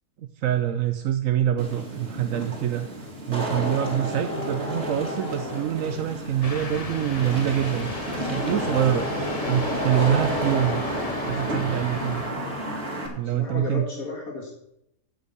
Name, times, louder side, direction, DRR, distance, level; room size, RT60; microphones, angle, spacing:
voice 1, 0.2-3.0 3.3-9.0 9.5-10.8 11.2-12.2 13.2-13.9, right 11 dB, 70° right, 8 dB, 1.0 m, -25 dB
Wind / Rain, 1.6-13.1, equal, 45° right, 2.5 m, -30 dB
sound 1, 6.4-12.3, left 4 dB, 30° left, 0.9 m, -37 dB
voice 2, 13.1-14.5, left 3 dB, 80° left, -1 dB, 2.3 m, -34 dB
8.6 x 8.0 x 6.8 m, 0.79 s
omnidirectional pair, 1.5 m